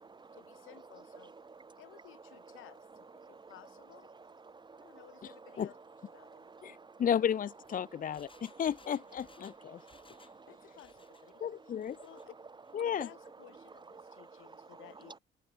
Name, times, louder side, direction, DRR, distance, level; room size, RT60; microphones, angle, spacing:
voice 1, 0.3-1.3 1.8-4.1 4.8-5.8 6.1-6.4 10.5-11.3 12.0-12.3 12.8-15.2, left 15 dB, 90° left, 4.1 m, -57 dB
voice 2, 1.4-1.8 3.2-3.5 4.4-4.9 6.2-7.0 9.7-10.6 13.9-14.3, right 4 dB, 25° right, 0.4 m, -54 dB
voice 3, 6.6-9.8 11.4-12.0 12.7-13.1, left 8 dB, 45° left, 0.6 m, -33 dB
Engine, 7.4-10.4 10.7-11.3 11.7-12.3 12.6-12.7, left 4 dB, 25° left, 4.3 m, -62 dB
cardioid pair, 90°, 20 cm